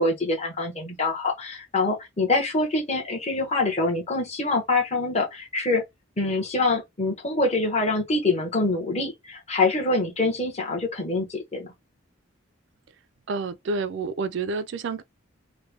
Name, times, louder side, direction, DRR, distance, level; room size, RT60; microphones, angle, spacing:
voice 1, 0.0-5.8 6.2-11.7, left 2 dB, 30° left, 1.0 m, -25 dB
voice 2, 13.3-15.0, right 4 dB, 60° right, 0.3 m, -29 dB
3.2 x 2.1 x 3.2 m
head